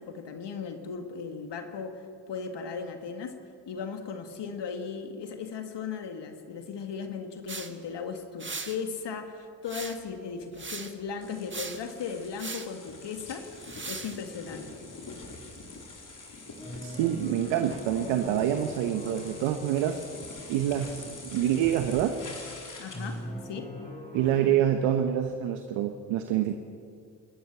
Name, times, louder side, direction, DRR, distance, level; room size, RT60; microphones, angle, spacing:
voice 1, 0.1-3.4 3.7-13.5 13.9-14.8 22.8-23.7, left 5 dB, 65° left, 6 dB, 2.0 m, -37 dB
sound 1, 7.5-7.7 8.4-8.8 9.7-10.1 10.5-10.9 11.5-11.8 12.4-12.7 13.6-14.2, right 4 dB, 25° right, 1.7 m, -38 dB
sound 2, 11.2-23.2, left 3 dB, 45° left, 4.5 m, -45 dB
sound 3, 16.6-21.5 22.9-24.5, equal, 15° left, 5.7 m, -42 dB
voice 2, 16.8-20.0 20.5-22.2 24.1-26.5, right 10 dB, 80° right, 7 dB, 1.1 m, -26 dB
28.5 x 13.5 x 7.7 m, 2.3 s
hypercardioid pair, 45°, 46 cm